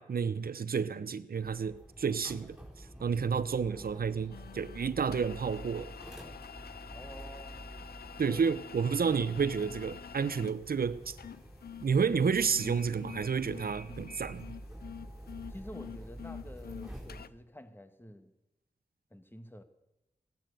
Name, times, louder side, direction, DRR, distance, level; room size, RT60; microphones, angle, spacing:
voice 1, 0.0-2.6 3.0-5.9 8.2-11.2 11.8-14.6, right 6 dB, 75° right, 15 dB, 0.8 m, -30 dB
sound 1, 1.4-17.2, right 1 dB, 5° right, 4.7 m, -48 dB
sound 2, 4.3-17.3, left 8 dB, 85° left, 0.5 m, -48 dB
voice 2, 6.9-7.6 8.2-8.6 15.5-18.3 19.1-19.6, equal, 15° left, 9 dB, 1.7 m, -49 dB
16.5 x 12.0 x 6.7 m, 0.97 s
cardioid pair, 45°, 16 cm